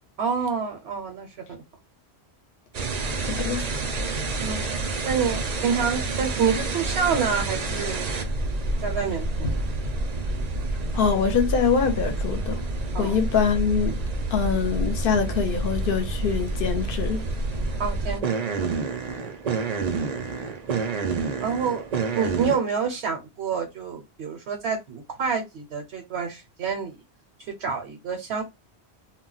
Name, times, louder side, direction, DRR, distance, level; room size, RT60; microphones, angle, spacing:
voice 1, 0.2-1.6 4.4-4.6 5.0-8.1 8.8-9.6 12.9-13.2 17.8-18.2 18.6-18.7 21.4-21.9 22.1-27.0 27.6-28.4, right 6 dB, 75° right, 0.9 m, -28 dB
sound 1, 2.7-22.6, right 3 dB, 50° right, 0.5 m, -28 dB
voice 2, 3.2-3.7 10.9-12.6 13.0-14.0 14.3-17.2, left 6 dB, 60° left, 0.8 m, -24 dB
2.3 x 2.1 x 3.8 m
omnidirectional pair, 1.1 m